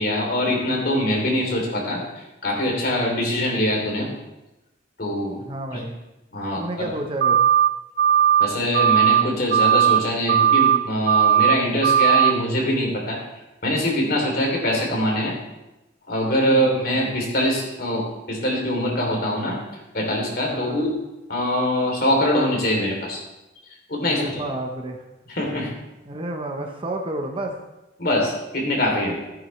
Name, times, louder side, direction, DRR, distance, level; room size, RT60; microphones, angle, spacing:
voice 1, 0.0-4.1 5.0-5.4 5.7-5.8 6.3-6.9 8.4-13.2 13.6-15.3 16.1-19.6 19.9-20.9 21.3-23.2 23.9-24.4 25.3-25.7 28.0-29.2, left 1 dB, 50° left, -1 dB, 3.1 m, -23 dB
voice 2, 5.5-6.0 6.6-7.5 16.5-16.8 20.5-20.9 24.1-25.0 26.1-27.6, right 1 dB, 25° right, 2 dB, 0.9 m, -31 dB
sound 1, 7.2-7.7 8.0-8.5 8.7-9.2 9.5-10.0 10.3-10.8 11.1-11.5 11.8-12.3, right 9 dB, 50° right, 0.4 m, -17 dB
15.5 x 8.8 x 3.2 m, 1.0 s
head